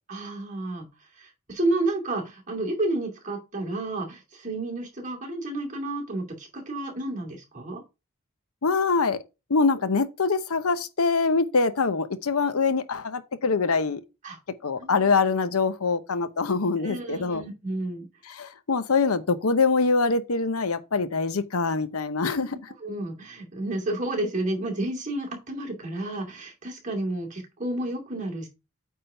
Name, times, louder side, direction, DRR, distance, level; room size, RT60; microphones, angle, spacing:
voice 1, 0.1-0.9 1.2-7.8 14.2-14.4 14.8-15.1 16.8-18.1 22.4-22.5 22.8-28.5, right 2 dB, 35° right, 2.5 m, -31 dB
voice 2, 8.6-9.2 9.5-14.0 14.6-17.4 18.3-22.6, left 4 dB, 85° left, 0.8 m, -24 dB
8.7 x 3.6 x 5.5 m
head